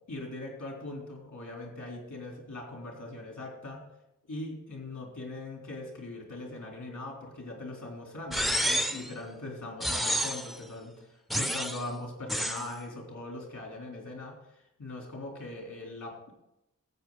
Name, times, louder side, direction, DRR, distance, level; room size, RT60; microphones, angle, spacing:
voice 1, 0.1-3.8 4.3-16.3, left 2 dB, 80° left, 0 dB, 3.4 m, -41 dB
sound 1, 8.3-9.1 9.8-10.6 11.3-11.8 12.3-12.7, equal, ahead, 0.4 m, -29 dB
13.5 x 8.3 x 3.9 m, 0.88 s
wide cardioid pair, 95°, 30 cm